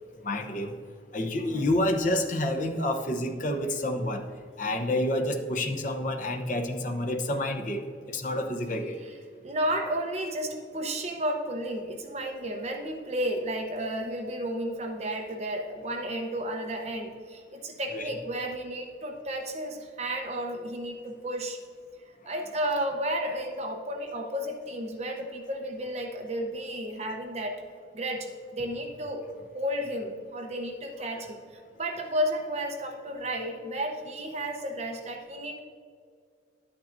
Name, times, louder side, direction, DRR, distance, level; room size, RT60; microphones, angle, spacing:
voice 1, 0.2-0.7 1.1-4.2 4.6-8.9 17.9-18.1 22.3-22.4, left 1 dB, 45° left, 3 dB, 0.8 m, -29 dB
voice 2, 9.4-21.6 22.2-27.6 27.9-35.6, right 1 dB, 35° right, 3 dB, 0.8 m, -32 dB
11.5 x 8.8 x 2.6 m, 2.2 s
head